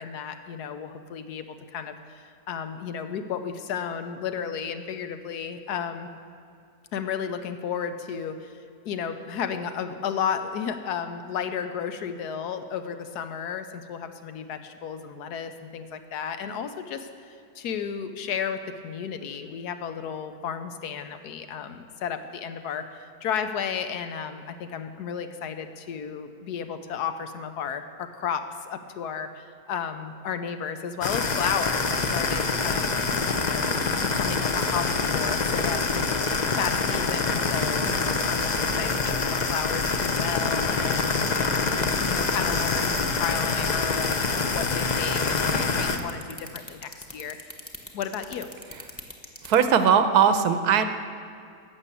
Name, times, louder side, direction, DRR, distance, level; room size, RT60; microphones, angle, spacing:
voice 1, 0.0-6.1 6.9-32.9 33.3-33.7 34.0-41.7 42.0-47.4 47.9-48.5, left 7 dB, 85° left, 9 dB, 1.3 m, -33 dB
Crackling candle, 31.0-46.0, left 4 dB, 45° left, 0.6 m, -25 dB
sound 1, 39.0-49.6, left 1 dB, 10° left, 1.1 m, -40 dB
voice 2, 49.4-50.8, right 7 dB, 80° right, 10 dB, 1.3 m, -19 dB
12.0 x 7.3 x 8.4 m, 2.4 s
omnidirectional pair, 1.7 m